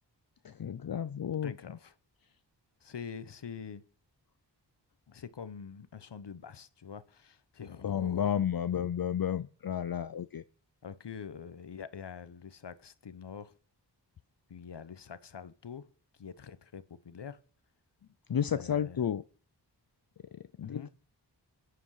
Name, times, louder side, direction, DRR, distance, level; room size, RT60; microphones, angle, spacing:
voice 1, 0.4-1.5 7.8-10.4 18.3-19.2 20.3-20.9, left 9 dB, 55° left, 0.6 m, -32 dB
voice 2, 1.4-1.9 2.8-3.8 5.1-8.3 8.7-8.9 10.8-13.6 14.5-15.9 16.1-17.4 18.5-19.0 20.6-20.9, left 6 dB, 70° left, 1.1 m, -45 dB
25.5 x 10.0 x 4.9 m
cardioid pair, 45°, 43 cm